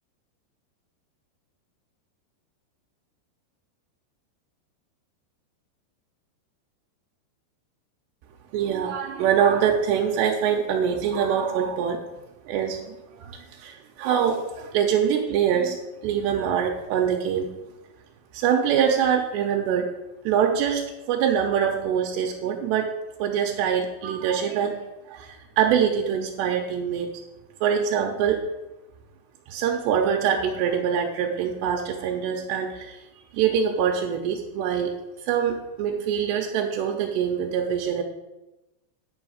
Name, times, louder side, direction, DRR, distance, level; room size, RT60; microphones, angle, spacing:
voice 1, 8.5-12.0 12.5-15.8 16.0-17.5 18.3-19.9 20.3-22.9 23.2-24.8 25.1-27.1 27.6-28.4 29.5-33.0 33.3-34.9 35.2-38.0, right 8 dB, 80° right, 1 dB, 2.8 m, -24 dB
9.8 x 5.0 x 6.4 m, 1.0 s
omnidirectional pair, 5.0 m